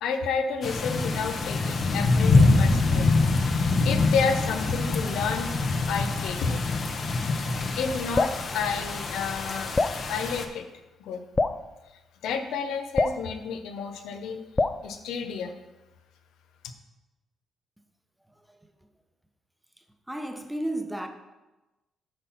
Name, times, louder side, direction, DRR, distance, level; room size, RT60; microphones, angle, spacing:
voice 1, 0.0-3.2 3.5-5.5 5.9-6.6 7.8-9.7 10.1-10.7 11.0-11.2 12.2-14.4 14.8-15.5, left 5 dB, 85° left, 0.7 m, -30 dB
sound 1, 0.6-10.4, left 3 dB, 50° left, 0.9 m, -25 dB
Drip, 8.1-8.4 9.8-10.0 11.4-11.6 13.0-13.2 14.6-14.8, left 3 dB, 25° left, 0.3 m, -24 dB
voice 2, 18.3-18.7 19.8-21.1, right 1 dB, 5° right, 0.9 m, -34 dB
7.7 x 4.1 x 5.9 m
cardioid pair, 90°, 0 cm